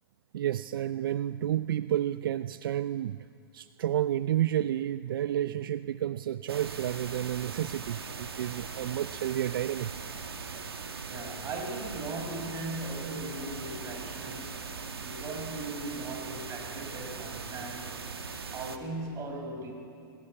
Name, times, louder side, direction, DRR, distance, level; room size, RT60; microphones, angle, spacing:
voice 1, 0.3-3.2 3.5-10.1, right 12 dB, 65° right, 15 dB, 0.5 m, -31 dB
sound 1, 6.5-18.8, right 5 dB, 90° right, 1.9 m, -40 dB
voice 2, 11.1-14.6 14.9-18.0 18.5-19.7, right 2 dB, 25° right, 3 dB, 5.5 m, -38 dB
21.5 x 19.5 x 8.7 m, 2.5 s
hypercardioid pair, 120°, 12 cm